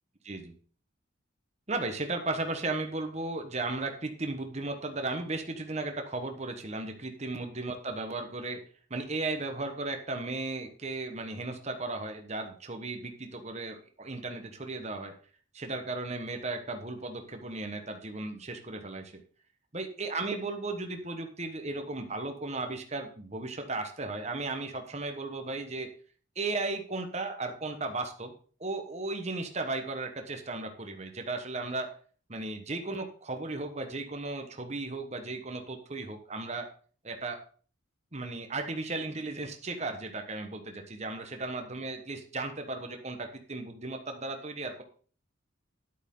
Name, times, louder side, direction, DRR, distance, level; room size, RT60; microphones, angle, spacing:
voice 1, 1.7-8.6 8.9-15.1 15.5-19.1 19.7-25.9 26.3-28.3 28.6-31.9 32.3-36.7 37.0-37.4 38.1-44.8, right 2 dB, 35° right, 5 dB, 1.3 m, -35 dB
11.0 x 8.2 x 3.9 m, 0.43 s
head